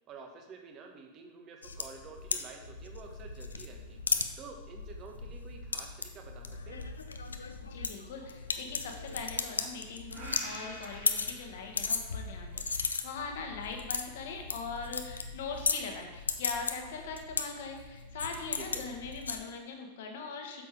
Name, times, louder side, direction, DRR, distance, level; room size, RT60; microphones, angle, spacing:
voice 1, 0.1-4.0 4.4-6.8 18.5-18.9, right 5 dB, 35° right, 3 dB, 1.3 m, -49 dB
sound 1, 1.6-19.4, left 4 dB, 75° left, 0.6 m, -36 dB
voice 2, 7.7-20.6, left 4 dB, 55° left, 3 dB, 1.3 m, -41 dB
sound 2, 10.1-12.3, right 1 dB, 55° right, 2.4 m, -47 dB
8.5 x 6.8 x 3.5 m, 1.3 s
figure-of-eight pair, 90°, 0 cm